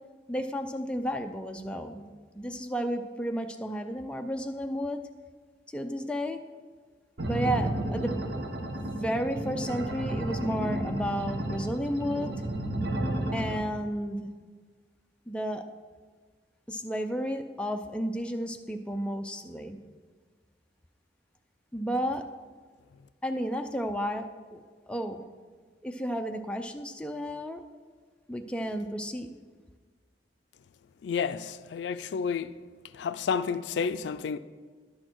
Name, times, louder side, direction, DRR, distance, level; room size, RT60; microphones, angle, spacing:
voice 1, 0.3-5.0 5.7-6.4 7.2-8.1 9.0-12.3 13.3-14.3 15.3-15.6 16.7-19.8 21.7-22.2 23.2-24.3 24.5-25.2 25.8-27.6 28.3-29.3, equal, 5° left, 0.4 m, -32 dB
sound 1, 7.2-13.6, right 1 dB, 65° right, 1.0 m, -32 dB
voice 2, 31.0-32.5 32.9-34.4, left 6 dB, 80° left, 0.3 m, -30 dB
10.5 x 6.4 x 4.5 m
head